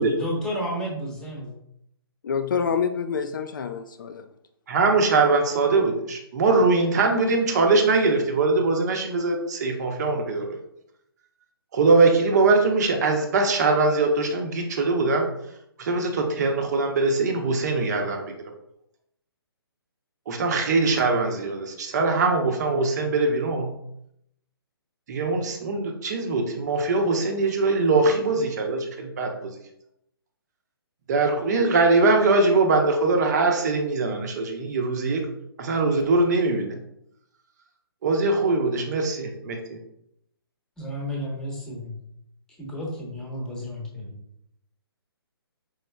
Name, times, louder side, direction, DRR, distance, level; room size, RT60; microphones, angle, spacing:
voice 1, 0.2-1.5 40.8-42.0 42.6-44.2, equal, 5° left, -3 dB, 1.0 m, -32 dB
voice 2, 2.2-4.2, left 6 dB, 50° left, 8 dB, 0.4 m, -27 dB
voice 3, 4.7-10.6 11.7-15.3 15.8-18.2 20.3-23.7 25.1-29.5 31.1-35.2 35.6-36.7 38.0-39.8, right 3 dB, 45° right, 3 dB, 0.8 m, -22 dB
5.0 x 3.8 x 2.2 m, 0.77 s
figure-of-eight pair, 130°, 13 cm